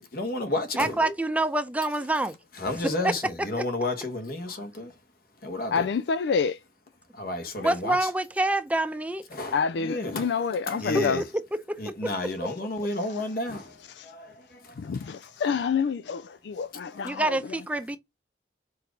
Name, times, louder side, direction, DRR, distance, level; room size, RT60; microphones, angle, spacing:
voice 1, 0.1-1.1 2.6-4.9 5.4-5.9 7.1-8.1 9.3-10.3 10.7-11.2 11.8-15.2 16.9-17.2, left 2 dB, 55° left, 1.3 m, -32 dB
voice 2, 0.8-2.4 2.8-3.1 3.6-3.7 7.6-9.2 10.9-12.1 17.0-18.0, right 1 dB, 10° right, 0.6 m, -27 dB
voice 3, 5.7-6.6 9.5-11.2 14.8-17.4, left 6 dB, 75° left, 0.4 m, -27 dB
4.8 x 4.6 x 5.1 m
head